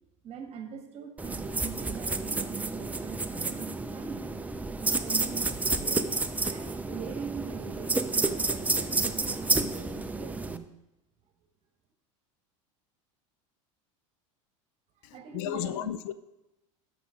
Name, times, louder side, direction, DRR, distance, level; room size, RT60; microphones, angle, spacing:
voice 1, 0.2-4.3 4.9-6.1 6.5-10.7 15.1-15.9, right 7 dB, 40° right, 1.5 m, -42 dB
sound 1, 1.2-10.6, right 3 dB, 10° right, 0.4 m, -30 dB
voice 2, 15.0-16.1, left 12 dB, 65° left, 0.5 m, -34 dB
12.5 x 6.0 x 3.7 m
supercardioid pair, 105°, 17 cm